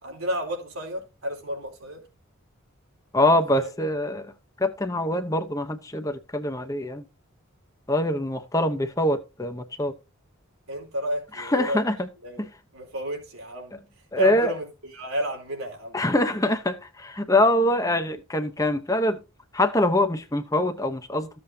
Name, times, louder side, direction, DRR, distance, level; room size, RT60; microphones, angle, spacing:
voice 1, 0.0-2.1 3.5-3.7 10.7-11.8 12.2-13.8 14.2-16.0, equal, 90° right, 4.5 m, -32 dB
voice 2, 3.1-4.3 4.6-7.0 7.9-9.9 11.3-12.1 12.4-12.5 14.1-14.5 15.9-19.2 19.5-21.3, left 1 dB, 15° left, 0.9 m, -24 dB
14.5 x 7.7 x 2.8 m
head